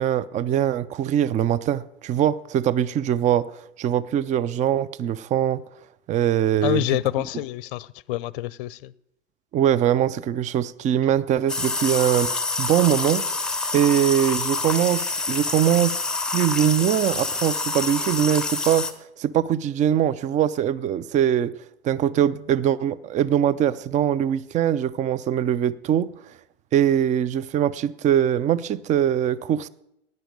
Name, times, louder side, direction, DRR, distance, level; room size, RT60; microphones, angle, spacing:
voice 1, 0.0-3.5 3.8-5.6 6.1-6.9 9.5-12.3 12.6-13.2 13.7-16.0 16.3-18.9 19.2-21.5 21.8-26.1 26.7-29.7, right 10 dB, 20° right, 0.5 m, -22 dB
voice 2, 6.6-8.9, left 15 dB, 50° left, 0.6 m, -27 dB
sound 1, 11.5-18.9, left 3 dB, ahead, 1.1 m, -27 dB
16.0 x 10.5 x 5.1 m
figure-of-eight pair, 85°, 33 cm